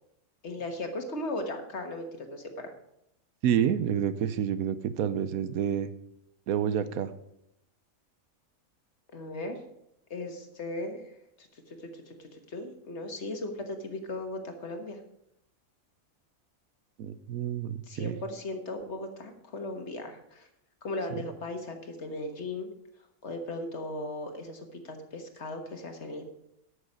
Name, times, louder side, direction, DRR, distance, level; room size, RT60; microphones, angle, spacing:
voice 1, 0.4-2.7 9.1-9.6 10.1-15.0 17.8-20.5 20.8-22.7 23.2-26.2, left 2 dB, 55° left, 5 dB, 1.6 m, -37 dB
voice 2, 3.4-5.9 6.5-7.1 17.0-18.2, right 9 dB, 90° right, 13 dB, 1.2 m, -28 dB
13.0 x 6.5 x 5.3 m, 0.80 s
omnidirectional pair, 1.5 m